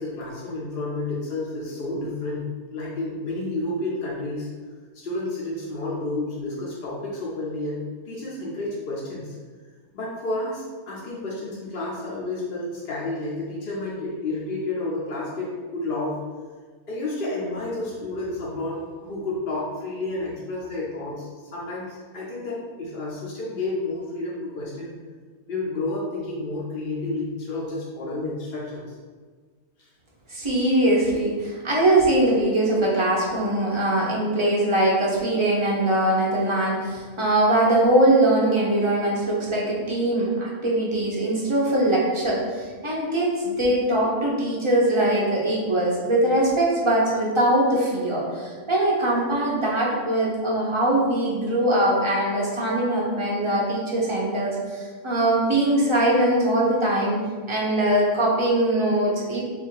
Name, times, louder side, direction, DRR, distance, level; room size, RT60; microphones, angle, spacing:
voice 1, 0.0-2.4 2.7-4.5 4.9-9.4 9.9-16.2 16.9-24.9 25.5-29.0 29.8-29.9, left 2 dB, 50° left, -6 dB, 0.7 m, -30 dB
voice 2, 30.3-57.2 57.5-59.4, right 1 dB, 35° right, -5 dB, 0.5 m, -22 dB
3.7 x 2.4 x 4.5 m, 1.5 s
omnidirectional pair, 1.5 m